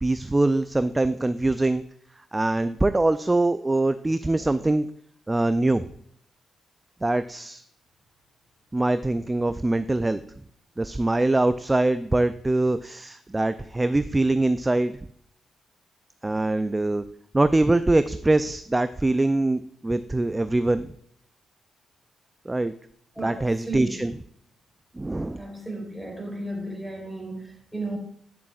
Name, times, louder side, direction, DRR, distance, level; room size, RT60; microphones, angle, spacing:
voice 1, 0.0-1.8 2.3-4.9 5.3-5.8 7.0-7.6 8.7-10.2 10.8-14.9 16.2-17.0 17.3-20.9 22.5-22.7 23.2-24.1 25.0-25.4, right 2 dB, 20° right, 12 dB, 0.4 m, -23 dB
voice 2, 23.7-24.0 25.4-28.0, right 2 dB, 5° right, 0 dB, 3.4 m, -34 dB
10.5 x 7.0 x 2.4 m, 0.65 s
supercardioid pair, 50°, 0 cm